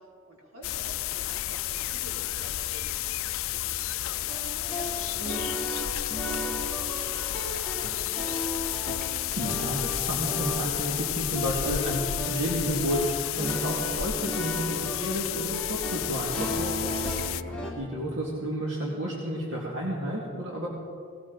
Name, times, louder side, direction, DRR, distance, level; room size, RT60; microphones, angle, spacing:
voice 1, 0.0-3.2 3.5-8.1 17.4-17.7, equal, 75° right, -3 dB, 3.9 m, -48 dB
sound 1, 0.6-17.4, left 14 dB, 70° left, 0.4 m, -31 dB
sound 2, 4.3-17.7, equal, 5° left, 2.2 m, -35 dB
voice 2, 9.4-16.9 17.7-20.7, equal, 60° right, -4 dB, 2.3 m, -31 dB
19.0 x 18.5 x 4.1 m, 2.3 s
head